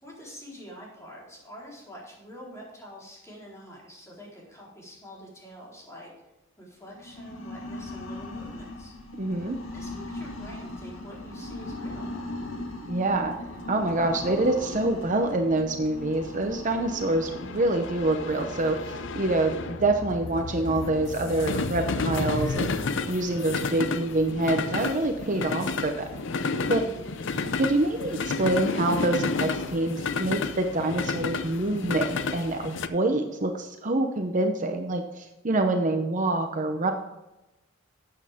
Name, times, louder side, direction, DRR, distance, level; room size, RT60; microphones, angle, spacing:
voice 1, 0.0-6.1 6.6-9.0 9.4-12.1 26.7-27.3, equal, 15° left, -5 dB, 4.2 m, -46 dB
sound 1, 6.9-25.6, left 2 dB, 85° left, 1.8 m, -40 dB
voice 2, 9.2-9.6 12.9-13.3 13.7-22.7 23.0-26.1 26.7-26.8 27.5-36.9, right 2 dB, 40° right, 5 dB, 0.8 m, -26 dB
sound 2, 13.4-32.9, left 4 dB, 65° left, 0.6 m, -31 dB
12.5 x 8.6 x 3.6 m, 0.96 s
head